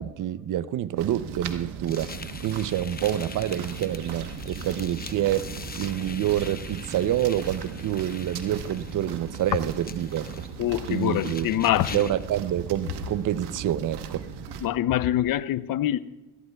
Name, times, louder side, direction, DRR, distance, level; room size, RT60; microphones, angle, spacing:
voice 1, 0.0-2.1 2.4-5.5 5.8-10.4 10.9-11.5 11.9-14.2, right 11 dB, 50° right, 16 dB, 0.6 m, -27 dB
sound 1, 1.0-14.7, right 6 dB, 85° right, 1.1 m, -38 dB
sound 2, 1.9-12.3, left 5 dB, 25° left, 0.8 m, -44 dB
voice 2, 10.6-12.1 14.6-16.0, left 12 dB, 60° left, 16 dB, 0.6 m, -25 dB
21.5 x 15.5 x 2.3 m, 1.0 s
supercardioid pair, 65°, 39 cm